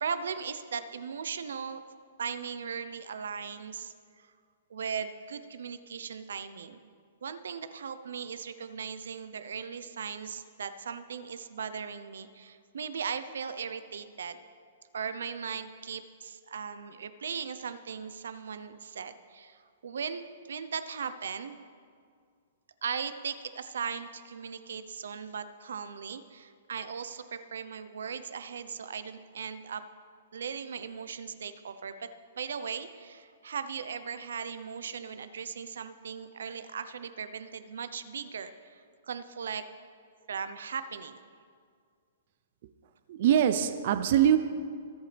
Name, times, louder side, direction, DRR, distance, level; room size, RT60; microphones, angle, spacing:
voice 1, 0.0-1.8 2.2-4.3 4.7-6.8 7.2-14.4 14.9-21.6 22.8-29.8 30.3-32.1 32.4-39.6 40.3-41.2, right 6 dB, 90° right, 11 dB, 0.7 m, -38 dB
voice 2, 43.1-44.4, right 10 dB, 45° right, 10 dB, 0.5 m, -23 dB
24.0 x 8.1 x 3.4 m, 2.2 s
hypercardioid pair, 170°, 0 cm